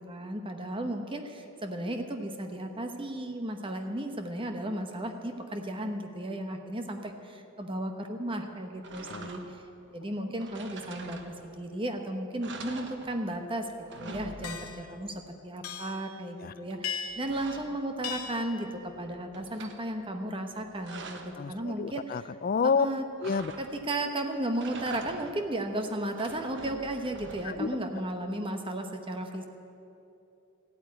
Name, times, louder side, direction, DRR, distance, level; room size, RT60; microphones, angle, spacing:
voice 1, 0.1-9.6 9.9-13.7 14.0-21.2 21.5-22.1 22.6-23.0 23.6-29.5, right 1 dB, 25° right, 5 dB, 1.0 m, -34 dB
sound 1, 8.8-9.7 10.4-11.7 12.0-12.1 12.4-13.5 13.7-15.0 16.7-18.5 18.9-19.8 20.5-21.4 23.2-24.0 24.5-25.5 26.0-27.8, right 3 dB, 55° right, 1.2 m, -45 dB
sound 2, 14.4-14.8 15.6-16.0 16.8-17.3 18.0-18.5, left 7 dB, 80° left, 1.0 m, -37 dB
voice 2, 21.3-22.9 23.2-23.5 27.4-27.8 29.4-29.5, left 5 dB, 40° left, 16 dB, 0.4 m, -30 dB
14.5 x 8.8 x 9.5 m, 2.9 s
head